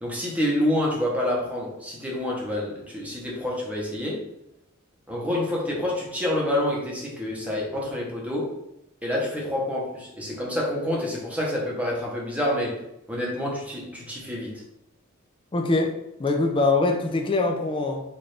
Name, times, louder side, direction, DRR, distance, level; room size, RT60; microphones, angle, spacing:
voice 1, 0.0-4.2 5.1-8.5 9.0-12.8 13.1-14.6, left 1 dB, 5° right, -3 dB, 0.9 m, -27 dB
voice 2, 15.5-15.9 16.2-18.0, left 3 dB, 25° left, 3 dB, 0.4 m, -23 dB
4.2 x 2.5 x 3.2 m, 0.85 s
head